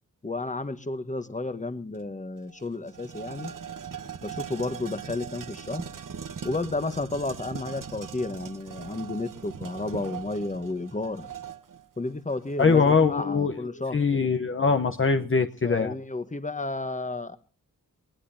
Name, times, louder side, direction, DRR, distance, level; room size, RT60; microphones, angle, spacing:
voice 1, 0.2-3.5 4.2-5.8 6.4-11.3 12.0-14.0 15.6-17.4, left 2 dB, 20° left, 11 dB, 1.3 m, -32 dB
sound 1, 1.9-2.0 2.4-13.1, right 7 dB, 70° right, 1.2 m, -40 dB
voice 2, 12.6-13.5 13.9-15.9, left 5 dB, 40° left, 7 dB, 0.9 m, -22 dB
22.0 x 19.5 x 2.8 m, 0.39 s
wide cardioid pair, 70°, 33 cm